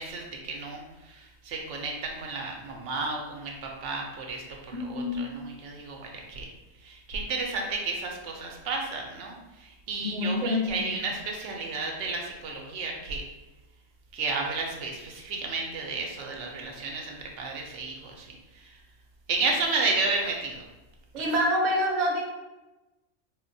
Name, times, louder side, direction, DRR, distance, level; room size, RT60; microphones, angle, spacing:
voice 1, 0.0-6.5 6.8-9.4 9.6-13.2 14.1-18.3 19.3-20.6 21.2-21.3, right 3 dB, 80° right, 1 dB, 0.9 m, -32 dB
voice 2, 4.9-5.3 10.0-10.9 21.1-22.2, left 1 dB, 45° right, -2 dB, 0.6 m, -26 dB
3.9 x 2.1 x 2.6 m, 1.1 s
omnidirectional pair, 1.2 m